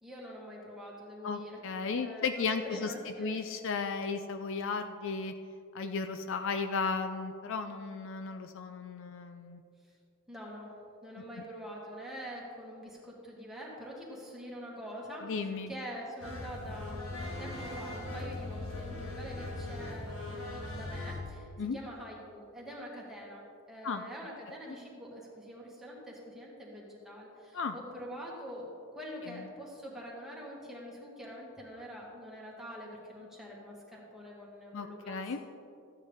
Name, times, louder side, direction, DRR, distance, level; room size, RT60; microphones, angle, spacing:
voice 1, 0.0-1.6 1.9-3.4 10.3-10.7 11.0-23.4 23.7-35.4, equal, ahead, -4 dB, 1.9 m, -45 dB
voice 2, 1.2-5.3 5.7-9.6 11.2-11.3 15.2-15.7 21.6-21.8 23.8-24.1 27.5-27.7 29.2-29.4 34.7-35.4, left 4 dB, 60° left, 8 dB, 0.5 m, -35 dB
sound 1, 16.2-21.2, left 2 dB, 80° left, 1.7 m, -40 dB
13.5 x 9.1 x 3.5 m, 2.5 s
head